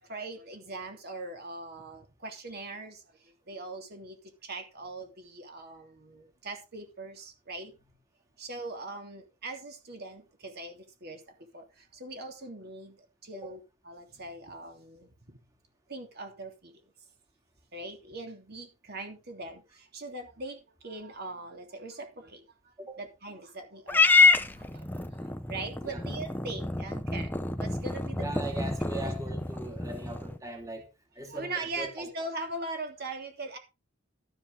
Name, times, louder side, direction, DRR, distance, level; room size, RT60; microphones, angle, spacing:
voice 1, 0.0-4.2 4.4-7.7 8.4-15.4 15.9-16.7 17.7-24.2 24.5-27.3 27.6-28.4 29.0-29.1 31.2-33.6, right 2 dB, 50° right, 3.0 m, -41 dB
Purr / Meow, 23.9-30.4, left 4 dB, 10° left, 0.9 m, -27 dB
voice 2, 24.4-25.1 25.9-26.1 28.2-30.9 31.1-31.5 31.8-32.1, right 1 dB, 15° right, 2.8 m, -40 dB
13.0 x 9.7 x 3.9 m
head